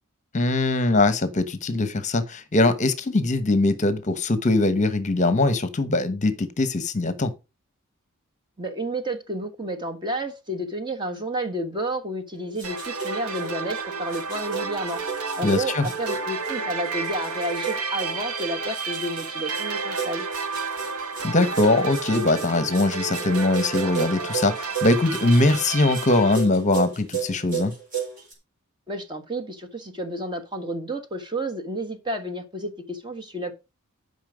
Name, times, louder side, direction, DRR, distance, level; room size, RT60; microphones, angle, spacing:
voice 1, 0.3-7.3 15.4-15.9 21.2-27.7, left 2 dB, 35° left, 1.0 m, -22 dB
voice 2, 8.6-15.0 15.4-20.3 28.9-33.5, right 1 dB, 20° right, 1.4 m, -31 dB
sound 1, 12.3-28.3, right 6 dB, 40° right, 3.9 m, -34 dB
sound 2, 12.6-26.3, right 4 dB, 90° right, 1.2 m, -31 dB
11.5 x 5.5 x 5.1 m
head